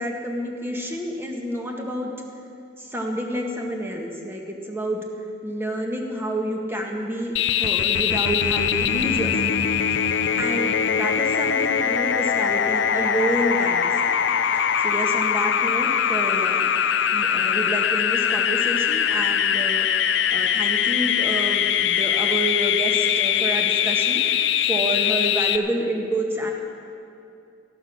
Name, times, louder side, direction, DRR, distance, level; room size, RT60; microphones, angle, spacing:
voice 1, 0.0-2.1 2.8-5.0 5.4-9.5 10.1-14.2 14.8-16.7 16.9-26.5, right 1 dB, 15° right, 0 dB, 1.7 m, -29 dB
sound 1, 7.4-25.6, left 8 dB, 65° left, 0.5 m, -22 dB
14.5 x 11.5 x 6.2 m, 2.5 s
head